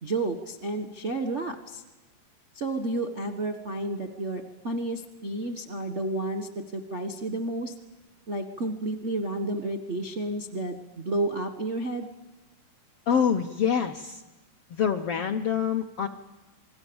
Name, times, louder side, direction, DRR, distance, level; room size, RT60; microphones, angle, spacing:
voice 1, 0.0-1.8 2.5-7.7 8.3-12.1, right 2 dB, 45° right, 6 dB, 0.8 m, -31 dB
voice 2, 13.1-14.2 14.7-16.1, left 7 dB, 70° left, 4 dB, 1.5 m, -26 dB
28.0 x 21.0 x 7.1 m, 1.1 s
omnidirectional pair, 3.8 m